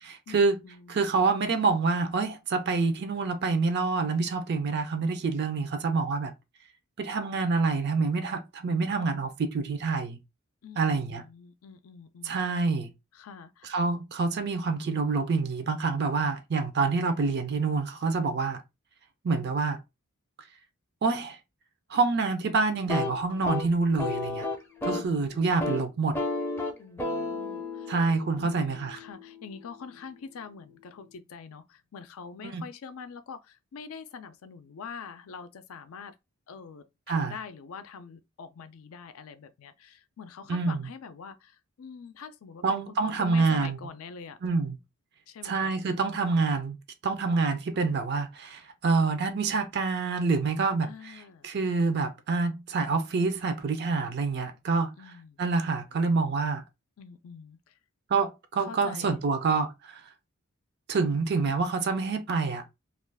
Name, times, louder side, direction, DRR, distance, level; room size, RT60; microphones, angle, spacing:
voice 1, 0.0-0.6 0.9-6.3 7.0-10.2 10.8-11.2 12.2-12.9 13.6-18.6 19.2-19.8 21.0-21.4 21.9-24.5 24.8-26.2 27.9-29.0 32.4-32.6 37.1-37.4 40.5-40.9 42.6-43.8 44.4-44.8 45.4-46.8 47.0-51.2 51.4-54.9 55.4-56.6 58.1-60.1 60.9-62.7, right 4 dB, 50° right, 0.4 m, -27 dB
voice 2, 0.6-1.0 10.6-12.4 13.1-13.7 24.9-25.5 26.8-27.9 28.3-36.1 36.5-44.4 45.3-45.8 50.8-51.5 55.0-55.4 57.0-57.7 58.6-59.1, left 6 dB, 70° left, 0.4 m, -45 dB
sound 1, 22.8-25.1 25.4-25.8 26.1-30.0, left 3 dB, 10° left, 0.5 m, -34 dB
2.4 x 2.3 x 3.3 m
head